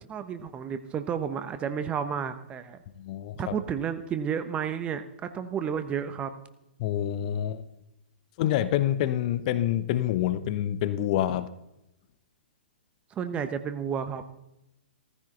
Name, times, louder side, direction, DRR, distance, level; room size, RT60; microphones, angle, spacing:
voice 1, 0.1-2.8 3.4-6.3 13.1-14.3, right 7 dB, 20° right, 1.1 m, -31 dB
voice 2, 3.0-3.5 6.8-7.6 8.4-11.5, left 12 dB, 40° left, 0.8 m, -27 dB
16.0 x 14.5 x 3.9 m
figure-of-eight pair, 115°, 6 cm